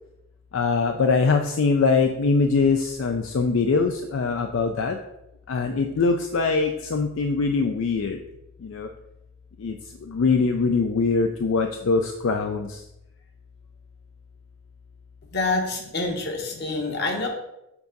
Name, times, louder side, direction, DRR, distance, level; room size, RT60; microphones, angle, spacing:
voice 1, 0.5-5.0 5.5-8.2 8.6-8.9 9.6-9.8 10.1-12.7, left 4 dB, 75° left, 5 dB, 0.4 m, -22 dB
voice 2, 15.3-17.3, left 3 dB, 50° left, 2 dB, 1.0 m, -26 dB
7.0 x 2.6 x 5.2 m, 0.89 s
head